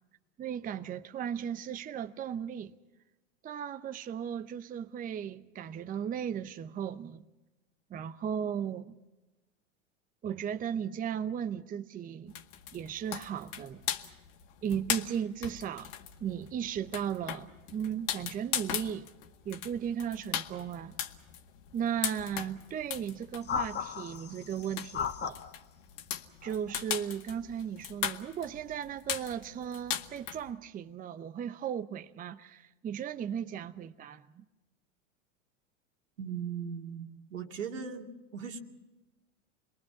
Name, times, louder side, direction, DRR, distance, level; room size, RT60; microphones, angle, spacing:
voice 1, 0.4-2.7 3.4-7.2 7.9-8.9 10.2-12.3 12.7-13.9 14.6-15.9 16.2-19.1 19.5-21.0 21.7-25.4 26.4-34.4, right 8 dB, 20° right, 0.7 m, -36 dB
sound 1, 12.3-30.5, left 10 dB, 60° left, 1.9 m, -39 dB
sound 2, 23.4-25.5 26.4-26.7, left 8 dB, 25° left, 1.5 m, -36 dB
voice 2, 36.2-38.1 38.3-38.6, right 7 dB, 85° right, 2.6 m, -38 dB
27.0 x 22.0 x 6.0 m
hypercardioid pair, 95°, 38 cm